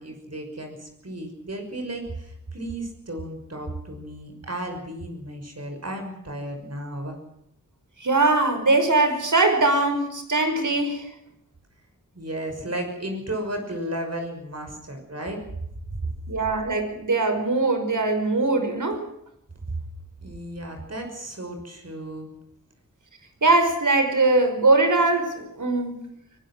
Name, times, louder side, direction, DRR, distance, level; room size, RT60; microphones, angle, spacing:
voice 1, 0.0-7.2 12.1-15.4 20.2-22.3, right 1 dB, 50° right, 3 dB, 6.0 m, -34 dB
voice 2, 8.0-11.1 16.3-19.0 23.4-26.0, right 2 dB, 65° right, 6 dB, 5.5 m, -21 dB
23.5 x 19.0 x 6.3 m, 0.76 s
wide cardioid pair, 65°, 34 cm